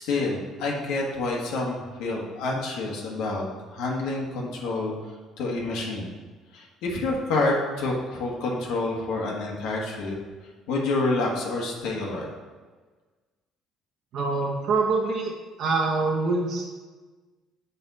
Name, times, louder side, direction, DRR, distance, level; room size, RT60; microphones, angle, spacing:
voice 1, 0.0-6.1 6.5-10.2 10.7-12.3, left 2 dB, 85° left, -2 dB, 1.5 m, -28 dB
voice 2, 14.1-15.3 15.6-16.7, right 3 dB, 55° right, -2 dB, 1.1 m, -25 dB
6.9 x 5.5 x 4.0 m, 1.3 s
cardioid pair, 140°, 0 cm